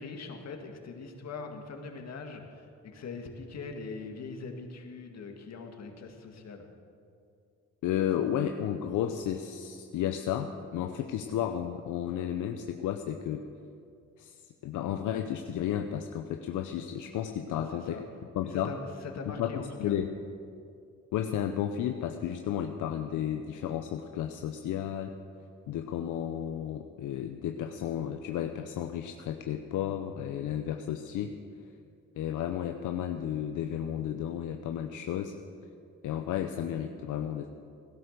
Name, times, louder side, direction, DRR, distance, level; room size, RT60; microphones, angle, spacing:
voice 1, 0.0-6.7 17.5-18.0 18.4-20.0, left 4 dB, 60° left, 4 dB, 2.1 m, -42 dB
voice 2, 7.8-13.4 14.2-14.4 14.6-18.0 18.3-18.7 19.3-20.1 21.1-25.1 25.7-31.4 32.2-35.3 36.0-37.5, left 10 dB, 80° left, 6 dB, 0.8 m, -33 dB
17.0 x 11.0 x 6.7 m, 2.5 s
cardioid pair, 90°, 30 cm